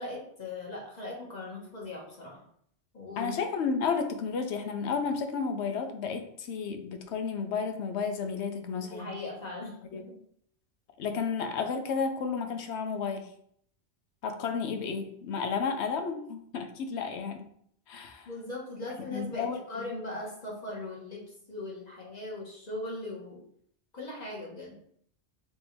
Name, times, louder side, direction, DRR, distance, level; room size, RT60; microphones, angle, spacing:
voice 1, 0.0-2.4 2.9-3.4 8.8-10.0 18.2-21.2 21.5-23.4 23.9-24.8, left 2 dB, 40° left, -3 dB, 1.2 m, -39 dB
voice 2, 3.2-9.1 9.9-10.0 11.0-13.3 14.2-17.5 17.9-18.3 19.1-19.9, left 5 dB, 80° left, 6 dB, 0.9 m, -32 dB
3.5 x 2.7 x 4.4 m, 0.66 s
omnidirectional pair, 1.2 m